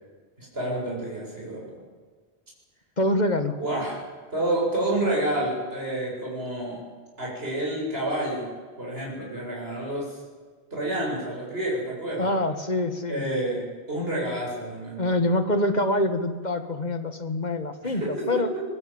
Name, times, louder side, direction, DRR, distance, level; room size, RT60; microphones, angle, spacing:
voice 1, 0.4-1.7 3.6-4.0 4.3-6.9 7.2-8.5 8.8-10.2 10.7-12.3 13.1-15.0 17.8-18.3 18.5-18.6, right 1 dB, 65° right, -3 dB, 7.9 m, -29 dB
voice 2, 3.0-3.6 12.2-13.3 15.0-18.5, left 1 dB, 40° left, 8 dB, 2.0 m, -25 dB
23.0 x 21.0 x 9.1 m, 1.5 s
omnidirectional pair, 1.1 m